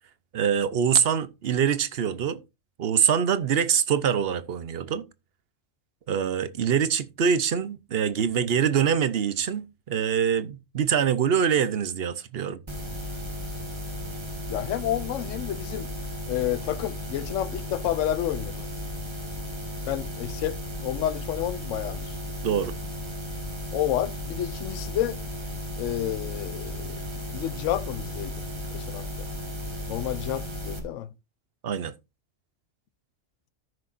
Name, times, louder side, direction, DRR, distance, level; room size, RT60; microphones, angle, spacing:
voice 1, 0.3-2.4 2.8-5.1 6.1-12.6 22.4-22.7 31.6-31.9, right 8 dB, 55° right, 1.0 m, -24 dB
sound 1, 12.7-30.8, left 1 dB, 20° right, 1.6 m, -35 dB
voice 2, 14.5-15.9 16.3-18.7 19.9-22.1 23.7-25.2 25.8-27.1 27.3-28.3 28.7-29.3 29.9-31.1, left 12 dB, 80° left, 1.0 m, -30 dB
14.0 x 6.5 x 2.5 m
omnidirectional pair, 1.3 m